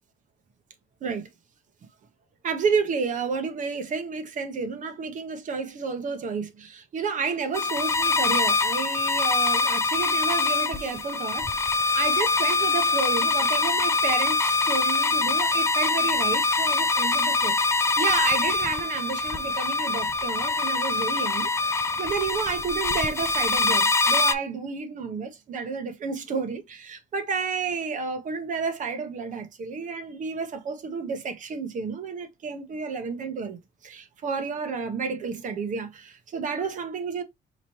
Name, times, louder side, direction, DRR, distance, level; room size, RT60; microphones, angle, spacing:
voice 1, 2.4-17.5 18.0-37.2, right 5 dB, 50° right, 1.0 m, -31 dB
sound 1, 7.5-24.3, left 3 dB, 15° left, 0.4 m, -24 dB
5.0 x 3.0 x 2.9 m
cardioid pair, 110°, 17 cm